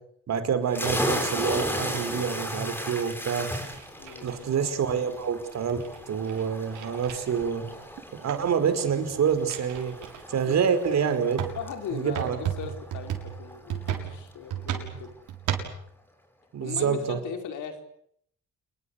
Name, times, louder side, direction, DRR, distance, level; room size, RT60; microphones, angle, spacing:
voice 1, 0.3-3.5 4.2-7.6 8.2-9.9 10.3-11.4 11.9-12.4 16.5-17.2, right 7 dB, 60° right, 9 dB, 5.0 m, -27 dB
sound 1, 0.7-14.1, equal, 5° left, 6.9 m, -35 dB
sound 2, 1.0-2.2 3.1-4.7 5.2-5.3 5.5-8.0 8.3-8.5 9.0-10.2 10.8-10.9 11.4-15.8, right 10 dB, 85° right, 7.0 m, -35 dB
voice 2, 4.0-4.5 10.5-10.6 11.5-15.1 16.6-17.8, left 6 dB, 75° left, 5 dB, 5.0 m, -38 dB
28.0 x 22.5 x 8.4 m, 0.69 s
cardioid pair, 90°, 30 cm